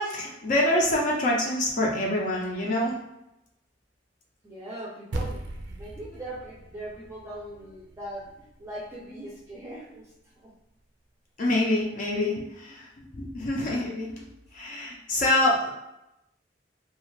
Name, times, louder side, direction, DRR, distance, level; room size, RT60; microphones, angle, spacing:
voice 1, 0.0-2.9 11.4-12.8 13.1-14.1 14.5-15.7, left 1 dB, 50° left, -2 dB, 0.5 m, -25 dB
voice 2, 4.4-10.1 10.4-10.5, right 1 dB, 15° right, -6 dB, 0.5 m, -40 dB
sound 1, 5.1-9.6, right 2 dB, 80° right, 0.4 m, -39 dB
2.4 x 2.4 x 3.1 m, 0.87 s
head